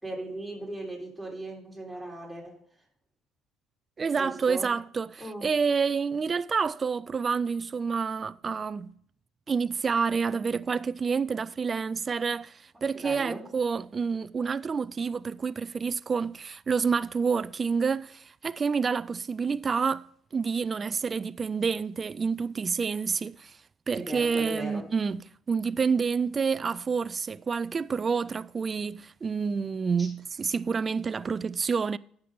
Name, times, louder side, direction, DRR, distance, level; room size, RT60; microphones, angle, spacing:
voice 1, 0.0-2.6 4.1-4.7 5.2-5.5 12.9-13.5 23.9-24.9 30.0-30.1, right 1 dB, 5° right, 3.5 m, -38 dB
voice 2, 4.0-8.9 9.5-20.1 20.3-23.6 23.9-32.0, right 5 dB, 35° right, 0.3 m, -28 dB
9.8 x 6.8 x 5.2 m
supercardioid pair, 80°, 0 cm